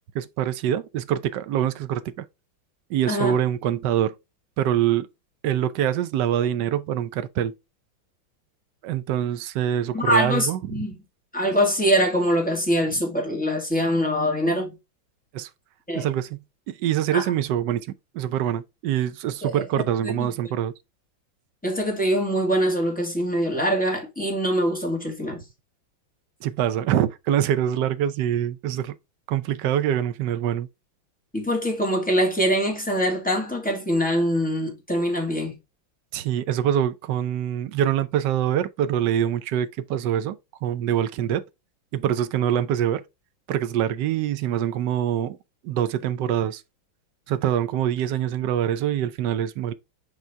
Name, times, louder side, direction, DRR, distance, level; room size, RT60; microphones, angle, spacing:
voice 1, 0.1-2.3 2.9-4.1 4.6-5.1 5.4-7.5 8.8-10.6 15.3-15.5 15.9-17.8 18.1-20.7 26.4-29.0 29.3-30.7 36.1-41.4 41.9-43.0 43.5-45.4 45.6-46.6 47.3-49.7, right 10 dB, 70° right, 1.2 m, -24 dB
voice 2, 9.9-11.0 11.3-14.7 15.9-16.1 17.1-17.3 19.4-19.6 20.0-20.3 21.6-25.4 31.3-35.5, equal, 5° left, 2.3 m, -23 dB
7.4 x 3.9 x 3.4 m
omnidirectional pair, 2.2 m